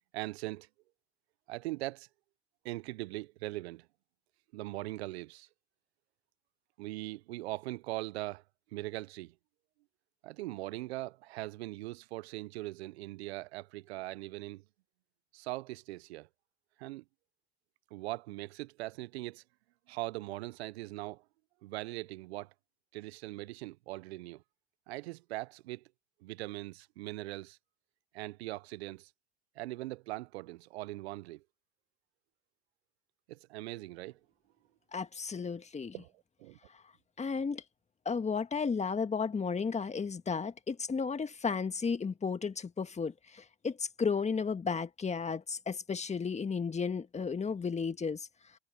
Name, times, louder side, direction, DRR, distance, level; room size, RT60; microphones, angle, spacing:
voice 1, 0.1-0.7 1.5-2.1 2.6-3.9 4.5-5.5 6.8-8.4 8.7-9.3 10.2-14.6 15.3-16.3 16.8-17.0 17.9-19.4 19.9-21.2 21.6-22.5 22.9-24.4 24.9-25.8 26.2-27.6 28.1-29.1 29.6-31.4 33.3-34.2 35.9-36.1 36.4-36.6, right 19 dB, 80° right, 0.8 m, -40 dB
voice 2, 34.9-36.0 37.2-37.6 38.1-48.3, left 5 dB, 20° left, 1.8 m, -33 dB
hypercardioid pair, 85°, 32 cm